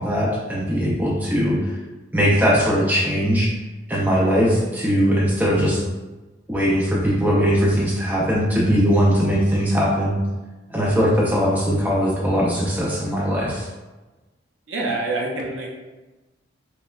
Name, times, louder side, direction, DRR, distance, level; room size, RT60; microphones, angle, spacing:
voice 1, 0.0-1.6 2.1-3.5 3.9-5.8 6.5-10.2 10.7-13.7, equal, 10° right, -5 dB, 0.4 m, -20 dB
voice 2, 14.7-15.7, right 2 dB, 70° right, -2 dB, 0.6 m, -26 dB
3.0 x 2.0 x 2.3 m, 1.1 s
head